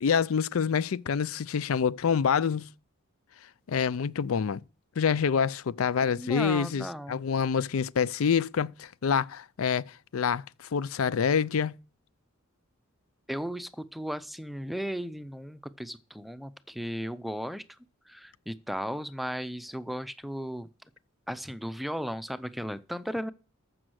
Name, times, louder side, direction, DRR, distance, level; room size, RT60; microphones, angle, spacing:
voice 1, 0.0-2.7 3.7-4.6 5.0-10.4 10.7-11.7, left 6 dB, 85° left, 0.5 m, -27 dB
voice 2, 6.2-7.3 13.3-17.8 18.1-20.7 21.3-23.3, equal, ahead, 0.5 m, -35 dB
14.0 x 6.2 x 6.3 m
head